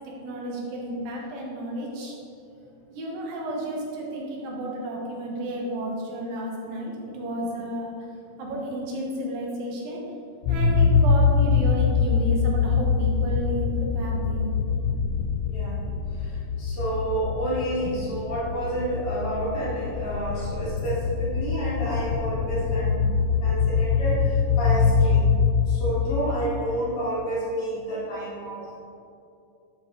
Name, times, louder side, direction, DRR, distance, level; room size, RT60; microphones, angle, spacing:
voice 1, 0.2-2.1 2.9-7.9 8.4-10.0 10.5-14.5, right 1 dB, 85° right, -2 dB, 3.1 m, -32 dB
sound 1, 10.4-26.1, left 5 dB, 75° left, 1.8 m, -23 dB
voice 2, 15.4-23.1 23.4-25.3 25.7-28.8, right 1 dB, 60° left, -8 dB, 3.3 m, -30 dB
10.5 x 5.2 x 3.9 m, 2.7 s
omnidirectional pair, 3.9 m